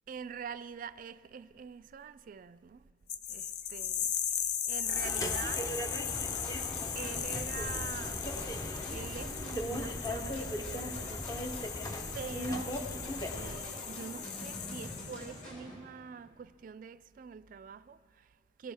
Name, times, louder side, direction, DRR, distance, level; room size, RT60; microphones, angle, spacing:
voice 1, 0.1-2.9 3.3-5.8 6.9-8.2 8.9-11.2 12.1-12.8 13.3-18.7, right 6 dB, 45° right, 0.3 m, -45 dB
sound 1, 3.1-15.4, left 9 dB, 60° left, 0.5 m, -38 dB
sound 2, 4.9-13.7, equal, 20° left, 0.7 m, -38 dB
sound 3, 6.1-15.7, equal, 45° left, 5.1 m, -46 dB
22.0 x 17.0 x 3.4 m
head